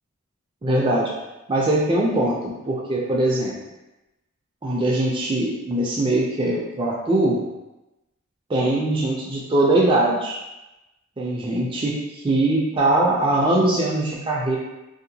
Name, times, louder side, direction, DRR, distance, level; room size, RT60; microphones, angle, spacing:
voice 1, 0.6-1.1 1.5-3.5 4.6-7.4 8.5-10.4 11.2-12.0 12.2-14.6, right 1 dB, 25° right, -3 dB, 0.4 m, -21 dB
2.7 x 2.1 x 2.7 m, 0.98 s
head